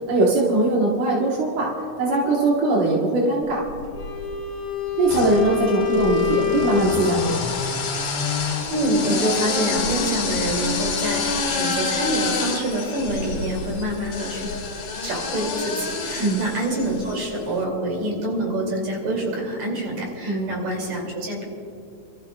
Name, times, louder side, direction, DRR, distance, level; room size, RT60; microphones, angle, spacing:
voice 1, 0.1-1.7 2.0-3.6 5.0-7.3 16.2-16.5 20.2-20.5, right 2 dB, 85° right, -3 dB, 2.9 m, -21 dB
sound 1, 3.7-4.4 5.1-17.4, left 5 dB, 70° left, 3.1 m, -28 dB
Wind instrument woodwind instrument, 3.9-7.4, left 10 dB, 55° left, 2.8 m, -26 dB
voice 2, 8.7-14.5 15.0-21.4, right 1 dB, 60° right, -1 dB, 4.0 m, -26 dB
29.5 x 14.0 x 2.4 m, 2.4 s
omnidirectional pair, 3.6 m